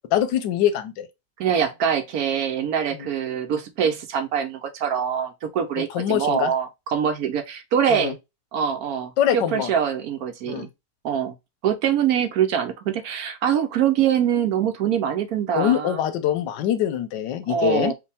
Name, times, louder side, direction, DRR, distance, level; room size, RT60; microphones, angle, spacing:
voice 1, 0.1-1.1 5.8-6.5 7.9-8.1 9.2-9.7 10.5-10.7 15.6-17.9, left 10 dB, 85° left, 1.3 m, -23 dB
voice 2, 1.4-8.1 8.5-10.7 11.0-11.3 11.6-16.0 17.5-17.9, right 8 dB, 70° right, 1.0 m, -24 dB
5.0 x 2.7 x 3.4 m
omnidirectional pair, 1.9 m